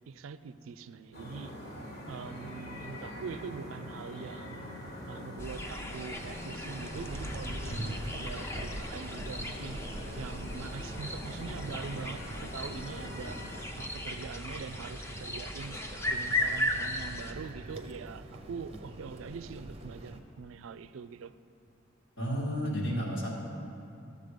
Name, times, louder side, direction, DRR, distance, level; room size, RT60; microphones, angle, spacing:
voice 1, 0.1-1.6 2.1-4.7 5.1-9.9 10.2-13.4 13.8-21.3, right 5 dB, 80° right, 14 dB, 0.4 m, -43 dB
sound 1, 1.1-13.6, left 1 dB, 50° left, 1.5 m, -43 dB
sound 2, 5.4-17.3, left 1 dB, 15° left, 0.6 m, -37 dB
sound 3, 6.9-20.2, right 1 dB, 30° right, 0.6 m, -45 dB
voice 2, 22.2-23.3, equal, 75° left, -3 dB, 2.1 m, -32 dB
13.5 x 6.6 x 5.1 m, 2.7 s
head